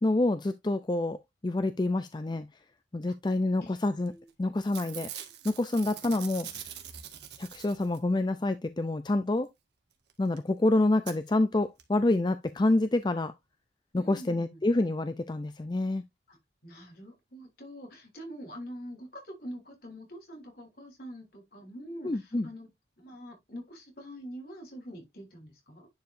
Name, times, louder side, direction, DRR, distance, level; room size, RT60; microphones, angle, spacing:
voice 1, 0.0-1.2 1.4-2.5 2.9-4.1 4.4-5.1 5.4-6.6 7.4-9.5 10.2-13.3 13.9-16.0 22.0-22.5, left 2 dB, 25° left, 0.4 m, -27 dB
Packing tape duct tape / Tearing, 4.1-4.3 4.6-8.2 10.1-10.2 10.4-10.5 11.1-11.2 11.8-11.9 12.1-12.2, right 10 dB, 70° right, 1.6 m, -43 dB
voice 2, 13.9-14.6 16.3-16.4 16.6-22.7 23.0-25.9, equal, 60° left, 4.0 m, -45 dB
10.5 x 4.8 x 2.6 m
head